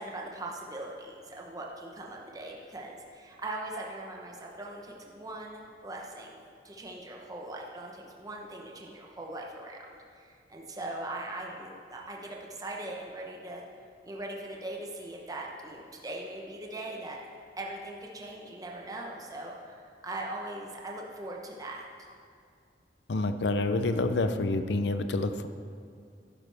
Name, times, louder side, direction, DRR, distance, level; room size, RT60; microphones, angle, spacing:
voice 1, 0.0-6.4 6.6-13.6 14.0-17.2 17.6-21.8, right 1 dB, 20° right, -1 dB, 0.9 m, -40 dB
voice 2, 23.1-25.5, left 2 dB, 75° left, 10 dB, 0.6 m, -28 dB
11.5 x 10.5 x 3.5 m, 2.3 s
head